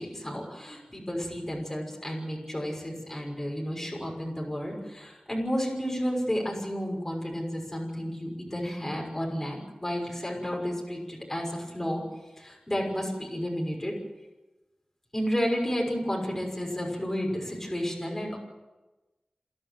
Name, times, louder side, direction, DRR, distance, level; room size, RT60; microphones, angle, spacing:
voice 1, 0.0-12.0 12.4-13.9 15.1-18.4, equal, 15° left, -1 dB, 6.2 m, -32 dB
28.5 x 11.5 x 9.3 m, 1.1 s
wide cardioid pair, 85°, 2 cm